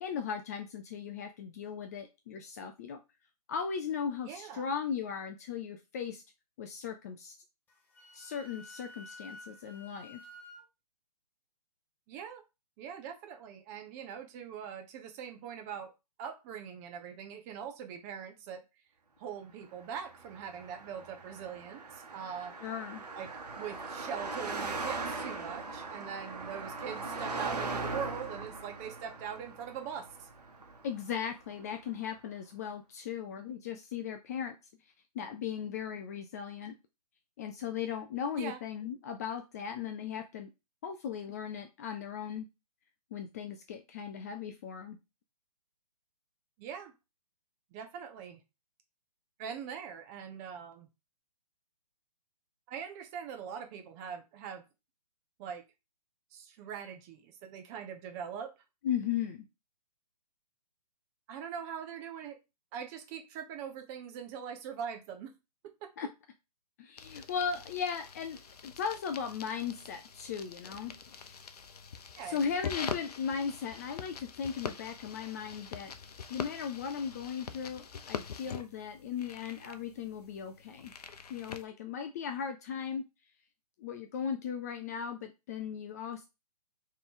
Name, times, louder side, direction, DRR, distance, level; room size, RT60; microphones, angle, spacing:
voice 1, 0.0-3.0 3.5-6.2 6.6-7.3 8.1-10.2 22.6-23.0 30.8-34.6 35.1-36.8 37.4-40.5 40.8-42.5 43.1-45.0 58.8-59.5 66.0-66.1 66.8-71.3 72.2-75.9 76.3-80.9 81.3-83.0 83.8-86.3, left 7 dB, 25° left, 6 dB, 0.4 m, -37 dB
voice 2, 4.2-4.7 12.1-12.4 12.8-15.9 16.2-18.6 19.2-22.5 23.2-23.3 23.6-30.3 38.4-38.6 46.6-46.9 47.7-48.4 49.4-50.9 52.7-54.6 55.4-55.6 56.3-58.5 61.3-62.4 62.7-65.3 65.8-65.9 72.2-72.5, right 8 dB, 25° right, 6 dB, 0.7 m, -42 dB
Wind instrument woodwind instrument, 7.7-10.6, left 1 dB, 10° left, 0.8 m, -51 dB
Car passing by, 19.9-31.5, right 3 dB, 80° right, 1.1 m, -40 dB
sound 1, 67.0-81.6, left 6 dB, 75° left, 0.6 m, -44 dB
3.7 x 3.2 x 3.7 m, 0.25 s
figure-of-eight pair, 135°, 20 cm